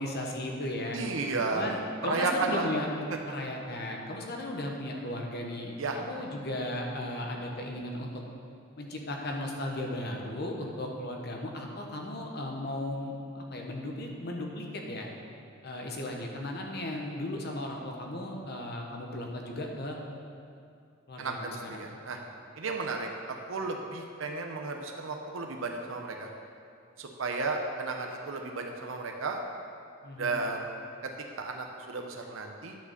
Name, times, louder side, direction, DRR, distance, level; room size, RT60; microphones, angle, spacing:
voice 1, 0.0-1.0 1.5-2.9 3.2-8.2 8.8-15.1 15.6-20.0 21.1-21.9 30.0-30.4, left 1 dB, 50° left, 1 dB, 1.1 m, -36 dB
voice 2, 0.9-2.7 5.8-6.0 21.2-22.2 22.6-26.3 27.0-29.4 30.2-30.7 31.4-32.8, right 3 dB, 70° right, 2 dB, 0.7 m, -33 dB
9.3 x 4.9 x 6.6 m, 2.4 s
head